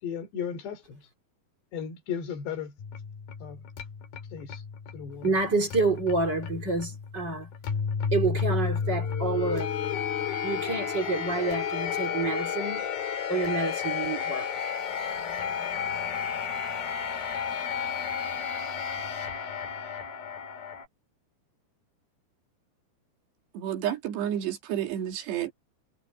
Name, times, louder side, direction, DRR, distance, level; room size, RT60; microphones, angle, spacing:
voice 1, 0.0-1.1 1.7-2.8 3.4-3.6 4.3-4.6 4.9-5.3, left 7 dB, 75° left, 5.4 m, -35 dB
sound 1, 2.8-20.9, left 7 dB, 60° left, 4.5 m, -32 dB
voice 2, 5.2-7.5 8.1-9.7 10.4-12.9 13.3-14.5, right 3 dB, 25° right, 4.0 m, -28 dB
voice 3, 23.5-25.5, right 10 dB, 75° right, 4.4 m, -30 dB
omnidirectional pair, 4.9 m